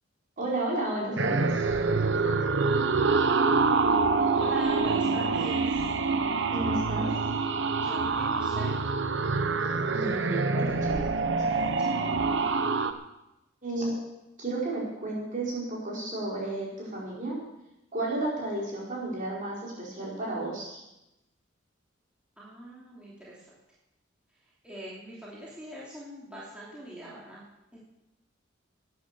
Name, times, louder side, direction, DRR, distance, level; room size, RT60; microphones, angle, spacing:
voice 1, 0.4-1.6 6.5-7.1 9.9-10.9 13.6-13.9 14.4-17.4 17.9-20.8, right 2 dB, 40° right, -4 dB, 4.9 m, -32 dB
sound 1, 1.2-12.9, right 4 dB, 65° right, 0.8 m, -26 dB
voice 2, 4.3-5.9 7.8-8.8 11.5-12.0 22.4-23.5 24.6-27.4 27.7-27.8, right 1 dB, 5° right, -8 dB, 3.0 m, -42 dB
13.0 x 10.0 x 6.9 m, 0.93 s
head